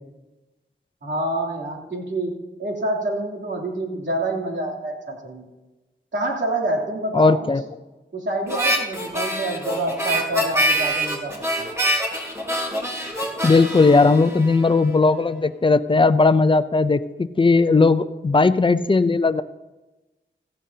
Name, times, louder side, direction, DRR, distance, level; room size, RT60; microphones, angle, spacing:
voice 1, 1.0-5.5 6.1-7.5 8.1-11.3 11.6-11.7, right 1 dB, 65° right, -2 dB, 3.0 m, -27 dB
voice 2, 7.1-7.6 13.4-19.4, left 3 dB, 25° left, 12 dB, 0.5 m, -17 dB
Harmonica, 8.5-15.0, right 1 dB, 15° right, 2.9 m, -25 dB
16.5 x 15.0 x 2.8 m, 1.1 s
wide cardioid pair, 100°, 20 cm